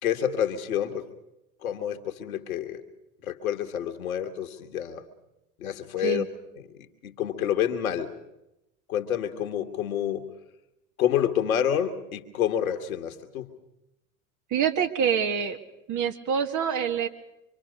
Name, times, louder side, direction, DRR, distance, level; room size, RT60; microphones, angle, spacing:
voice 1, 0.0-1.1 1.6-2.8 3.2-5.0 5.6-6.2 7.0-8.1 8.9-10.3 11.0-13.5, left 9 dB, 80° left, 7 dB, 1.8 m, -28 dB
voice 2, 14.5-15.6 15.9-17.1, right 7 dB, 45° right, 6 dB, 1.9 m, -26 dB
25.0 x 25.0 x 5.3 m, 0.88 s
hypercardioid pair, 75°, 42 cm